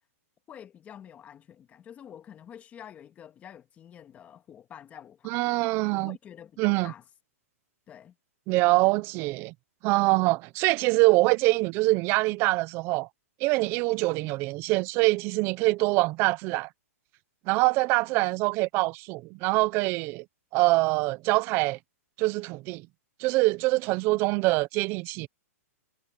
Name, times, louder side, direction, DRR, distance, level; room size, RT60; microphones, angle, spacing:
voice 1, 0.5-7.0 7.9-8.1 18.2-18.3, left 9 dB, 20° left, 2.0 m, -48 dB
voice 2, 5.2-6.2 6.6-6.9 8.5-9.5 9.8-13.1 13.4-16.7 17.5-20.2 20.5-21.8 22.2-22.8 23.2-25.3, right 22 dB, 30° right, 0.7 m, -24 dB
hypercardioid pair, 155°, 8 cm